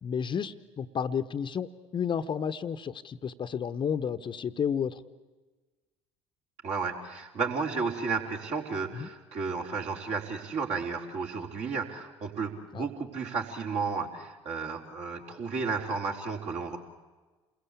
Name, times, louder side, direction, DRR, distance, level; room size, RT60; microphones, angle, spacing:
voice 1, 0.0-5.0 9.0-9.1 12.7-12.8, left 7 dB, 35° left, 10 dB, 1.1 m, -31 dB
voice 2, 6.6-16.8, right 5 dB, 50° right, 0 dB, 4.3 m, -33 dB
29.0 x 22.0 x 8.6 m, 1.3 s
figure-of-eight pair, 60°, 14 cm